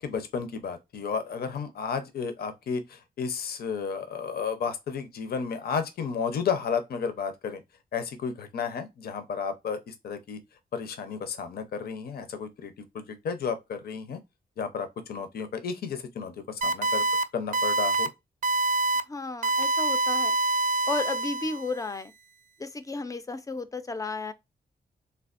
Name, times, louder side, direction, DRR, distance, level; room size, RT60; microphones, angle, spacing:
voice 1, 0.0-7.6 7.9-10.4 10.7-14.2 14.6-17.0 17.3-18.1, left 6 dB, 70° left, 0.6 m, -32 dB
sound 1, 16.6-17.2 17.5-18.1 18.4-19.0 19.4-21.7, right 2 dB, 50° right, 0.4 m, -25 dB
voice 2, 19.1-20.4 20.9-22.1 22.6-24.3, left 3 dB, 20° left, 0.3 m, -33 dB
3.3 x 2.3 x 2.4 m
wide cardioid pair, 110°, 17 cm